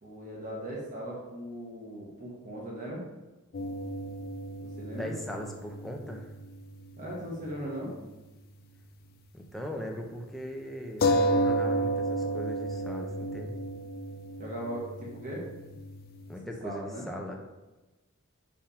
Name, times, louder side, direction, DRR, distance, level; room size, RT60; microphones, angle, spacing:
voice 1, 0.0-3.0 4.8-5.1 7.0-7.9 14.4-15.4 16.6-17.1, equal, 35° right, -5 dB, 1.3 m, -38 dB
sound 1, 3.5-7.4 7.7-7.8 11.0-16.2, right 1 dB, 45° left, 0.5 m, -32 dB
voice 2, 4.9-6.3 9.3-13.6 16.3-17.4, equal, ahead, 0 dB, 0.7 m, -39 dB
5.5 x 3.5 x 5.0 m, 1.1 s
head